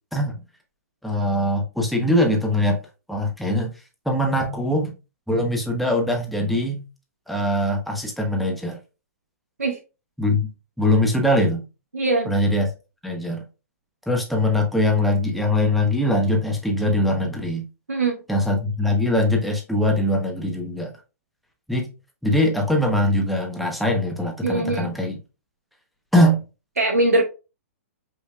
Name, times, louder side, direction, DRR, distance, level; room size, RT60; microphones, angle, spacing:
voice 1, 1.0-2.8 3.1-3.7 4.1-4.9 5.3-6.8 7.3-8.8 10.2-10.5 10.8-11.6 12.3-12.7 13.0-13.4 14.1-17.6 18.3-20.9 21.7-21.9 22.2-25.2 26.1-26.4, left 1 dB, ahead, 1 dB, 0.9 m, -22 dB
voice 2, 11.9-12.3 17.9-18.2 24.4-24.9 26.8-27.2, right 2 dB, 90° right, 0 dB, 0.8 m, -21 dB
5.3 x 3.3 x 2.3 m, 0.30 s
hypercardioid pair, 125°, 8 cm